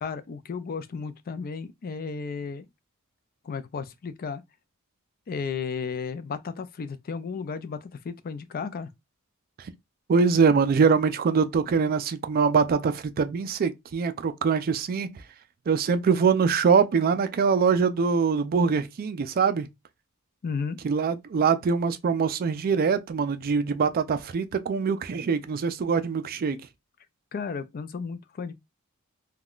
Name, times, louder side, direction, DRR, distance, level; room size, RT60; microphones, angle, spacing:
voice 1, 0.0-2.7 3.4-4.4 5.3-8.9 20.4-20.8 27.3-28.5, left 5 dB, 45° left, 0.4 m, -34 dB
voice 2, 10.1-15.2 15.7-19.7 20.8-26.6, right 5 dB, 45° right, 0.3 m, -23 dB
3.6 x 2.2 x 2.3 m
head